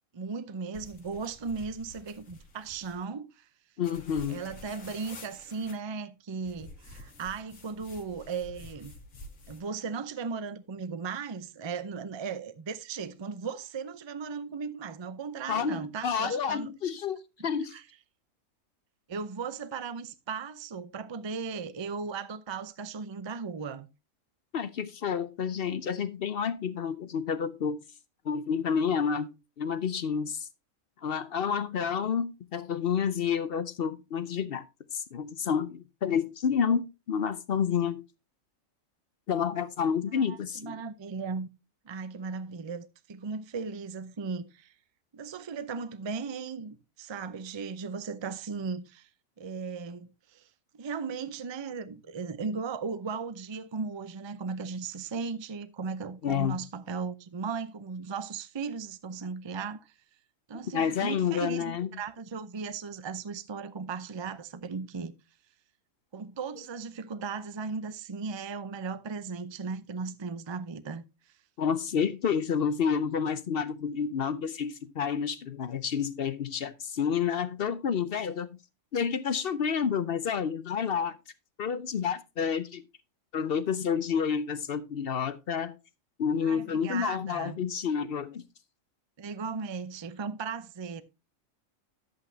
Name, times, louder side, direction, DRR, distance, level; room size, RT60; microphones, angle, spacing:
voice 1, 0.1-3.4 4.3-8.9 9.5-16.7 17.7-17.8 19.1-23.9 40.2-41.5 41.8-44.7 45.1-49.1 49.4-50.5 50.7-59.9 60.5-65.1 66.1-71.0 86.4-87.6 89.2-91.0, right 5 dB, 35° right, 0.4 m, -37 dB
sound 1, 0.7-3.0 3.8-5.8 6.4-9.7, left 2 dB, 80° left, 1.9 m, -49 dB
voice 2, 3.8-4.4 15.5-17.7 24.5-27.8 28.2-30.5 31.0-34.6 34.9-38.0 39.3-40.8 56.2-56.6 60.7-61.9 71.6-78.6 78.9-81.1 81.6-82.8 83.3-85.8 86.2-88.4, left 7 dB, 55° left, 0.7 m, -29 dB
11.0 x 8.1 x 2.7 m
omnidirectional pair, 1.4 m